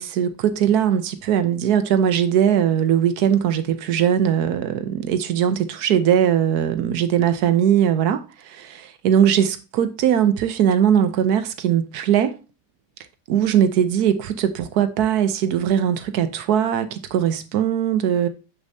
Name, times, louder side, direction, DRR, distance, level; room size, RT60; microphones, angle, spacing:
voice 1, 0.0-12.3 13.3-18.3, right 9 dB, 80° right, 1.2 m, -20 dB
7.2 x 6.4 x 2.7 m
omnidirectional pair, 1.7 m